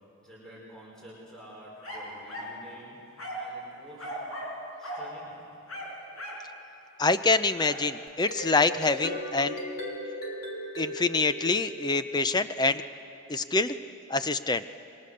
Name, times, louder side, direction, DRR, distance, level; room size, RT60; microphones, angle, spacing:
voice 1, 0.2-3.0 3.4-4.1 4.8-5.4, equal, ahead, -5 dB, 5.1 m, -49 dB
sound 1, 1.8-2.6 3.2-3.5 4.0-4.6 4.8-5.1 5.7-6.5 7.6-7.8, equal, 70° left, 5.4 m, -37 dB
voice 2, 7.0-9.6 10.8-12.8 13.3-13.8 14.1-14.6, left 3 dB, 20° left, 11 dB, 0.5 m, -26 dB
sound 2, 8.1-12.4, equal, 40° left, 3.1 m, -37 dB
27.0 x 22.5 x 6.6 m, 2.7 s
head